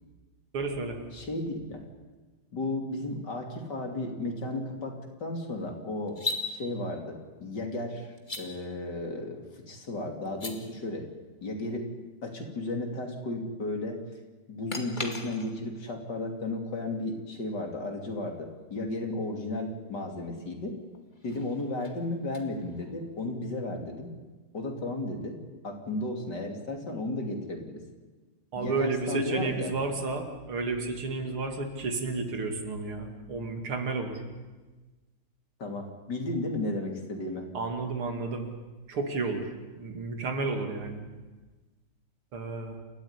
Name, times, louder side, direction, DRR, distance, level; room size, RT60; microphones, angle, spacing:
voice 1, 0.5-1.0 28.5-34.2 37.5-38.5 38.9-39.5 39.8-41.1 42.3-42.8, right 3 dB, 80° right, 5 dB, 3.4 m, -32 dB
voice 2, 1.1-1.8 2.5-6.2 6.4-8.1 8.4-11.1 11.4-11.9 12.2-14.0 14.5-20.8 21.2-24.1 24.5-25.4 25.6-27.8 28.6-29.7 35.6-37.5, left 2 dB, 50° left, 3 dB, 3.6 m, -34 dB
sound 1, 6.1-6.5 8.2-8.4 10.3-10.6 14.7-15.7 18.9-19.0 20.9-23.1, left 2 dB, 20° left, 2.3 m, -37 dB
28.5 x 14.0 x 9.8 m, 1.3 s
omnidirectional pair, 2.3 m